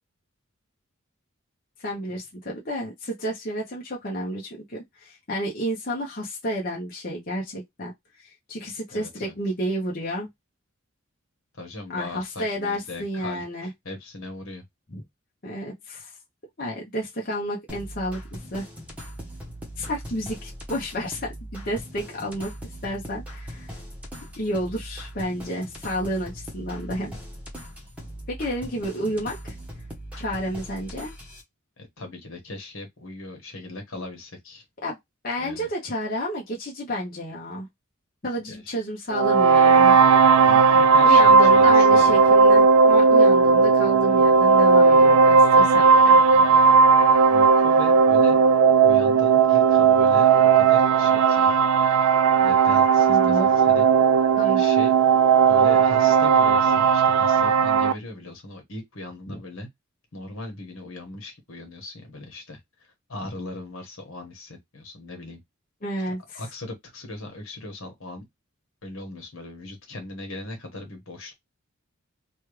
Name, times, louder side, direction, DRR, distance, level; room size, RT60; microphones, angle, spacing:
voice 1, 1.8-7.9 8.2-10.3 11.9-13.7 14.9-15.0 15.4-16.1 16.6-18.7 19.8-22.5 22.8-23.8 24.4-27.2 28.3-29.5 30.2-31.1 34.8-35.0 35.2-37.7 38.2-40.0 41.0-46.2 53.1-53.5 54.4-54.6 59.3-59.4 65.8-66.4, equal, 45° left, 0.9 m, -31 dB
voice 2, 8.9-9.3 11.5-14.6 31.8-34.6 35.4-35.7 38.5-38.8 40.4-42.3 46.3-46.6 47.3-48.4 48.8-51.5 52.4-53.8 54.5-54.9 55.3-59.7 60.1-62.6 63.1-65.4 66.3-68.3 68.8-71.3, left 2 dB, 70° left, 1.4 m, -38 dB
sound 1, 17.7-31.4, equal, 5° right, 1.0 m, -40 dB
sound 2, 39.1-57.9, right 5 dB, 80° right, 0.4 m, -16 dB
3.0 x 2.4 x 3.2 m
head